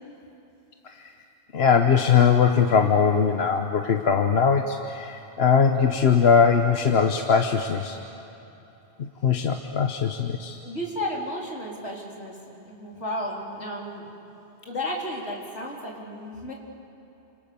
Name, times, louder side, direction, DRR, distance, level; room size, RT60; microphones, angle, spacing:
voice 1, 1.5-8.0 9.2-10.6, left 6 dB, 65° left, 5 dB, 1.2 m, -21 dB
voice 2, 10.6-14.3 14.6-16.5, left 1 dB, 85° left, -2 dB, 4.3 m, -33 dB
30.0 x 26.5 x 6.9 m, 3.0 s
omnidirectional pair, 1.1 m